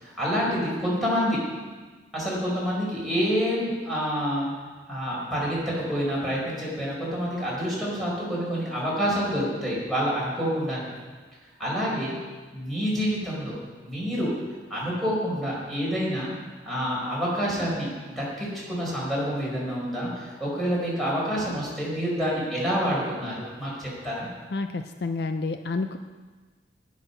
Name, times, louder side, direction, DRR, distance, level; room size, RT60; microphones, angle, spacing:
voice 1, 0.0-1.4 2.1-4.5 4.9-10.9 11.6-12.2 12.5-14.3 14.7-16.3 16.6-24.3, equal, ahead, -7 dB, 4.5 m, -28 dB
voice 2, 24.5-26.0, left 3 dB, 60° left, 8 dB, 0.5 m, -29 dB
18.0 x 6.2 x 5.5 m, 1.4 s
head